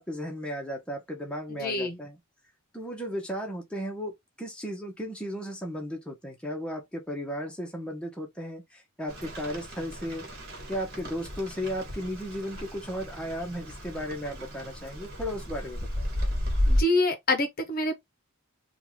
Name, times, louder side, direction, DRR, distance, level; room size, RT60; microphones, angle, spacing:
voice 1, 0.0-2.2 2.7-10.2 10.7-16.0, equal, 5° left, 0.8 m, -35 dB
voice 2, 1.5-2.0 16.7-17.9, left 2 dB, 40° left, 0.7 m, -26 dB
Rain, 9.1-16.8, equal, 45° right, 1.5 m, -32 dB
3.5 x 2.4 x 3.0 m
head